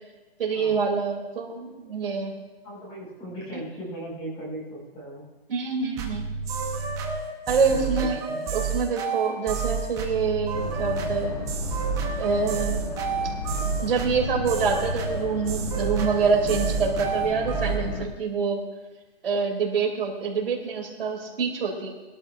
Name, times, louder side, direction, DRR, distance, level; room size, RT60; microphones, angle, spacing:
voice 1, 0.4-2.3 5.5-6.3 7.5-8.2 8.5-11.4 12.2-12.9 13.8-18.6 19.2-21.9, right 5 dB, 60° right, 1 dB, 2.8 m, -26 dB
voice 2, 2.6-5.3 7.7-8.5, right 1 dB, 15° left, -4 dB, 5.1 m, -37 dB
sound 1, 6.0-17.8, right 6 dB, 10° right, 0.9 m, -29 dB
Boat Water vehicle, 10.5-18.1, left 4 dB, 35° left, 1.7 m, -34 dB
21.5 x 12.5 x 2.5 m, 1.2 s
hypercardioid pair, 160°, 32 cm